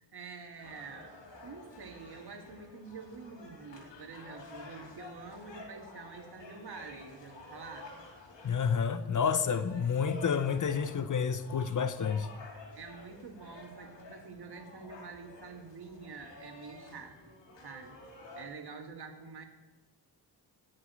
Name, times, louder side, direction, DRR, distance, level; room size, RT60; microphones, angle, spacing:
voice 1, 0.0-7.9 12.8-17.3 17.6-18.0 18.3-19.5, right 4 dB, 65° right, 2.0 m, -47 dB
sound 1, 0.6-18.4, left 3 dB, 90° left, 2.9 m, -51 dB
voice 2, 8.4-12.3, left 6 dB, 45° left, 0.8 m, -29 dB
15.0 x 6.5 x 9.4 m
wide cardioid pair, 155°, 42 cm